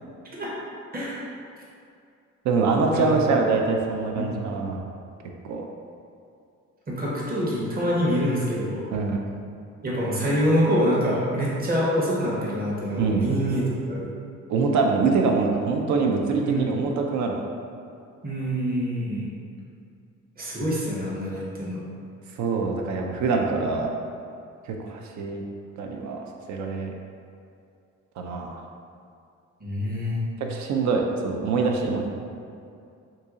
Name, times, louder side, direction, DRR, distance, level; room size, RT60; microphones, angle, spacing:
voice 1, 0.9-1.2 2.9-3.2 4.1-4.4 6.9-8.9 9.8-14.1 16.4-16.7 18.2-19.3 20.4-21.8 29.6-30.2, equal, 30° right, -6 dB, 0.9 m, -26 dB
voice 2, 2.4-4.8 5.4-5.6 8.9-9.2 13.0-13.3 14.5-17.4 22.4-23.9 24.7-25.4 25.8-26.2 26.5-26.9 28.2-28.6 30.5-32.1, right 4 dB, 70° right, 2 dB, 0.5 m, -24 dB
2.8 x 2.7 x 3.6 m, 2.5 s
cardioid pair, 90°, 30 cm